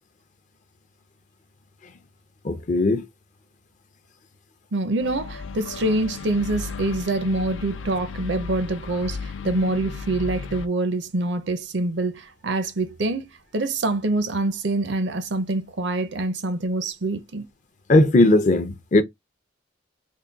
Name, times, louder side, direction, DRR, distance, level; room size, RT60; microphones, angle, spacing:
voice 1, 2.4-3.0 17.9-19.0, left 2 dB, 40° left, 0.5 m, -18 dB
voice 2, 4.7-17.5, right 2 dB, 65° right, 0.6 m, -25 dB
sound 1, 5.0-10.7, left 5 dB, 85° left, 0.5 m, -35 dB
3.6 x 2.2 x 3.9 m
head